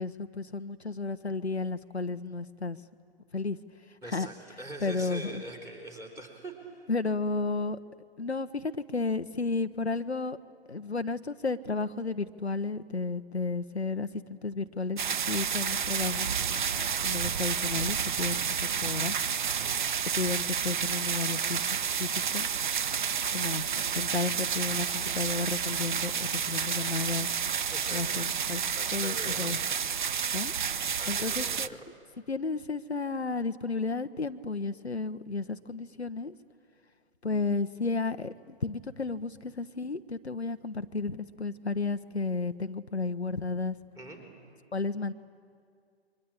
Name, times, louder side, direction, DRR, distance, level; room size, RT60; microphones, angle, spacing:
voice 1, 0.0-2.8 3.3-3.6 4.0-4.3 4.8-5.4 6.9-7.8 8.2-10.4 10.7-16.3 17.0-19.2 20.2-22.5 23.3-23.6 23.9-27.3 27.9-28.6 28.9-29.6 30.3-30.5 31.1-31.7 32.3-36.3 37.2-43.8 44.7-45.1, left 3 dB, 85° left, 10 dB, 0.9 m, -32 dB
voice 2, 4.0-6.8 19.6-20.0 27.7-28.3 28.8-29.5 31.0-31.8 44.0-44.2, right 1 dB, 10° right, 1 dB, 3.5 m, -43 dB
sound 1, 15.0-31.7, right 7 dB, 50° right, 0.7 m, -30 dB
29.0 x 23.5 x 8.8 m, 2.2 s
figure-of-eight pair, 130°, 32 cm